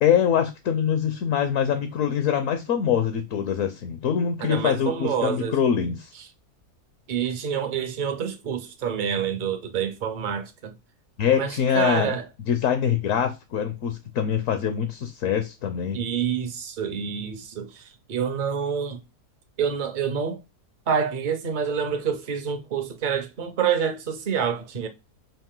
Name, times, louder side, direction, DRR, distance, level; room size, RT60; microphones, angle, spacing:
voice 1, 0.0-6.1 11.2-12.2 12.5-16.0, left 8 dB, 65° left, 0.9 m, -24 dB
voice 2, 4.4-5.6 7.1-10.7 11.3-12.2 15.9-19.0 19.6-20.4 20.9-24.9, right 7 dB, 50° right, 0.6 m, -27 dB
5.5 x 2.5 x 3.7 m
omnidirectional pair, 1.7 m